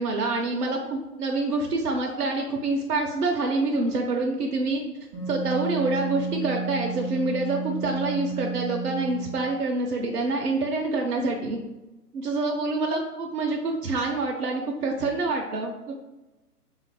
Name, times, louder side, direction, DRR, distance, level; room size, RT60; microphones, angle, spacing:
voice 1, 0.0-4.8 5.3-11.6 12.2-15.9, right 3 dB, 70° right, 1 dB, 0.6 m, -26 dB
Wind instrument woodwind instrument, 5.1-9.6, right 4 dB, 5° right, 0.5 m, -32 dB
2.6 x 2.5 x 4.0 m, 1.0 s
figure-of-eight pair, 135°, 48 cm